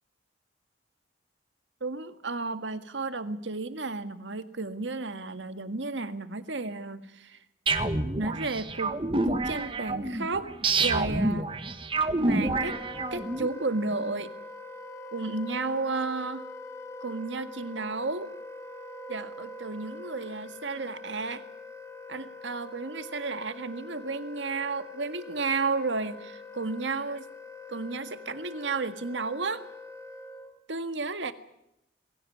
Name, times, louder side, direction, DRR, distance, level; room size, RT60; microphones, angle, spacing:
voice 1, 1.8-7.4 8.2-9.0 9.3-10.5 10.8-11.5 12.2-12.8 13.1-14.3 15.1-16.5 17.0-18.3 19.1-21.4 22.1-27.3 27.7-29.6 30.7-31.3, right 3 dB, 80° right, 10 dB, 1.8 m, -32 dB
sound 1, 7.7-13.5, right 2 dB, 30° right, 1.5 m, -28 dB
Wind instrument woodwind instrument, 12.4-30.6, left 2 dB, 15° left, 2.3 m, -44 dB
23.0 x 16.5 x 9.6 m, 0.81 s
head